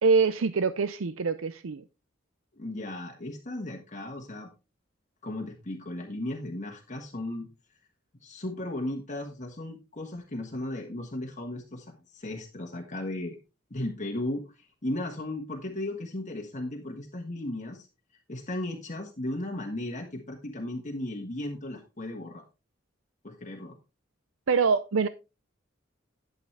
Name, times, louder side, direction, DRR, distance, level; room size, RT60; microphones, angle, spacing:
voice 1, 0.0-1.8 24.5-25.1, right 4 dB, 80° right, 13 dB, 0.6 m, -24 dB
voice 2, 2.5-4.5 5.2-7.5 8.2-13.4 13.7-17.9 18.3-22.4 23.2-23.7, left 1 dB, 35° left, 1 dB, 1.4 m, -36 dB
11.5 x 8.1 x 3.4 m, 0.29 s
head